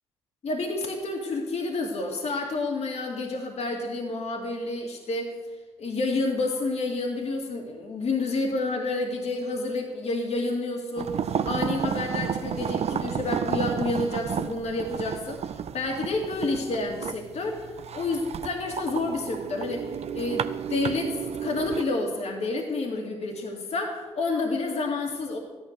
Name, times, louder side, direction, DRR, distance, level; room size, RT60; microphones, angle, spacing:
voice 1, 0.4-5.3 5.8-15.5 15.7-17.7 17.9-19.9 20.1-25.4, left 3 dB, 55° left, 1 dB, 2.2 m, -29 dB
sound 1, 11.0-21.8, right 8 dB, 55° right, 0.7 m, -32 dB
13.5 x 11.0 x 6.6 m, 1.3 s
supercardioid pair, 55°, 13 cm